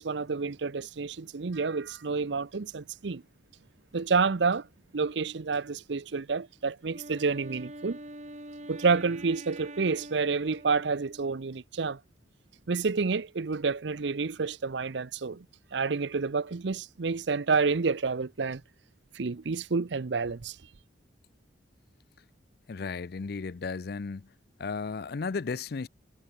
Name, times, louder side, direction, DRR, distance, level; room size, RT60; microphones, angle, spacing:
voice 1, 0.0-3.2 3.9-4.6 4.9-8.0 8.7-12.0 12.7-15.4 15.7-18.6 19.2-20.5, right 4 dB, 70° right, 0.6 m, -29 dB
Wind instrument woodwind instrument, 6.8-11.6, right 1 dB, 40° right, 3.6 m, -45 dB
voice 2, 22.7-24.3 24.6-25.9, left 4 dB, 55° left, 0.5 m, -34 dB
head